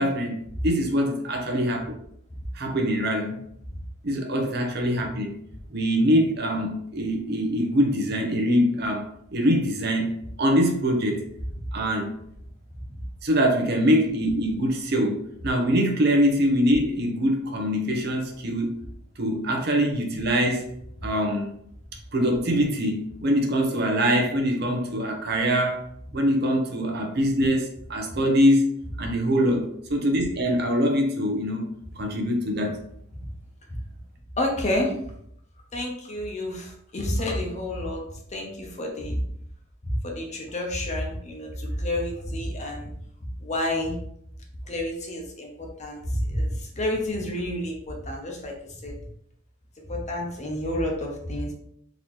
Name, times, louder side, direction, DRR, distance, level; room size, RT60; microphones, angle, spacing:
voice 1, 0.0-2.0 2.5-3.5 4.0-5.4 5.7-9.0 9.3-10.1 10.4-11.2 11.7-12.2 13.2-18.7 19.2-20.7 21.0-21.5 22.1-25.8 26.1-28.7 29.0-31.7 32.0-32.8, equal, 50° right, 2 dB, 0.8 m, -23 dB
voice 2, 34.4-35.1 35.7-38.0 38.3-39.2 39.8-42.9 43.4-44.0 44.7-48.9 49.9-51.5, left 1 dB, 35° left, 0 dB, 0.8 m, -29 dB
3.9 x 2.9 x 3.2 m, 0.70 s
head